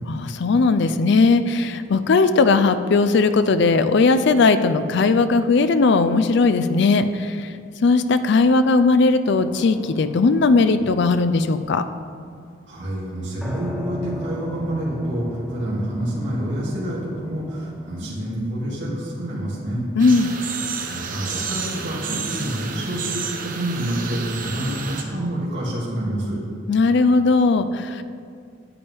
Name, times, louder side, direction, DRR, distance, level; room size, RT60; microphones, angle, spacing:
voice 1, 0.1-7.5 7.8-11.8 20.0-20.3 26.7-28.0, left 3 dB, 60° left, 11 dB, 0.4 m, -18 dB
sound 1, 9.2-11.9 13.4-18.0, equal, ahead, 0.8 m, -38 dB
voice 2, 12.7-19.8 20.9-26.4, right 1 dB, 60° right, -8 dB, 2.3 m, -27 dB
sound 2, 20.0-25.0, right 5 dB, 45° right, 0.8 m, -30 dB
9.6 x 8.6 x 3.5 m, 2.2 s
head